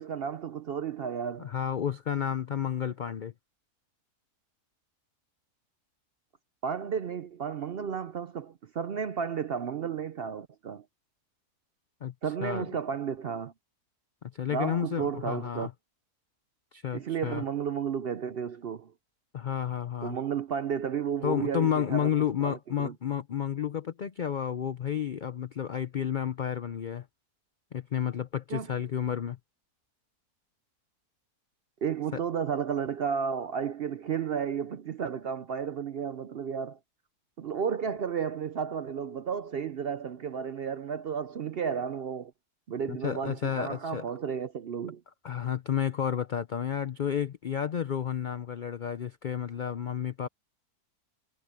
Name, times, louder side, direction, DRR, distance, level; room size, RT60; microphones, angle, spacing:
voice 1, 0.0-1.5 6.6-10.8 12.2-13.5 14.5-15.7 16.9-18.9 20.0-22.1 22.4-22.9 28.5-28.7 31.8-36.8 37.4-42.3 42.7-45.0, right 7 dB, 60° right, 0.6 m, -33 dB
voice 2, 1.4-3.3 12.0-12.1 12.4-12.8 14.3-15.7 16.7-17.4 19.3-20.2 21.2-27.1 27.7-29.4 32.1-32.2 42.9-44.0 45.2-50.3, left 9 dB, 85° left, 0.4 m, -31 dB
omnidirectional pair, 1.6 m